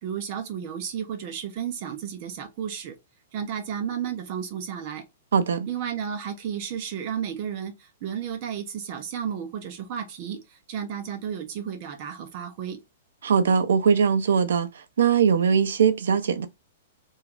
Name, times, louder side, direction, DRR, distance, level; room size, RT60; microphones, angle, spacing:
voice 1, 0.0-2.9 3.3-5.0 5.7-12.8, right 8 dB, 30° right, 0.5 m, -33 dB
voice 2, 5.3-5.7 13.2-16.5, right 7 dB, 80° right, 0.4 m, -21 dB
3.0 x 2.3 x 2.4 m
hypercardioid pair, 180°, 0 cm